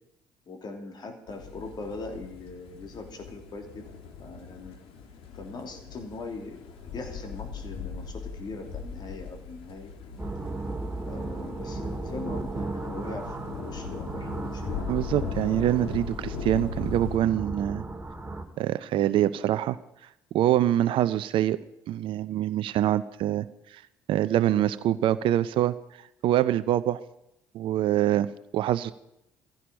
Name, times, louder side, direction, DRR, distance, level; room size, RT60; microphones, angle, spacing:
voice 1, 0.5-3.8 4.2-4.7 5.3-6.7 6.9-9.9 11.0-14.8, left 3 dB, 45° left, 4 dB, 3.1 m, -40 dB
sound 1, 1.3-17.2, left 5 dB, 60° left, 2.0 m, -39 dB
sound 2, 10.2-18.4, right 2 dB, 15° right, 2.6 m, -36 dB
voice 2, 14.9-17.8 18.6-19.8 20.3-21.6 21.9-23.5 23.7-23.8 24.1-25.7 26.2-27.0 27.5-28.3 28.5-28.9, right 12 dB, 55° right, 14 dB, 0.6 m, -24 dB
17.0 x 15.5 x 5.2 m, 0.81 s
hypercardioid pair, 50°, 10 cm